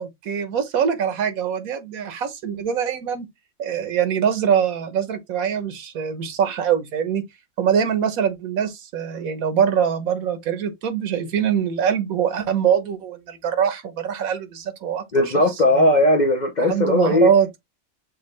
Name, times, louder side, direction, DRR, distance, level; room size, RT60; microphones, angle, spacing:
voice 1, 0.0-3.3 3.6-7.2 7.6-15.0 16.6-17.5, right 8 dB, 90° right, 1.4 m, -23 dB
voice 2, 15.1-17.3, left 1 dB, 40° left, 0.7 m, -18 dB
6.4 x 2.3 x 3.2 m
omnidirectional pair, 1.4 m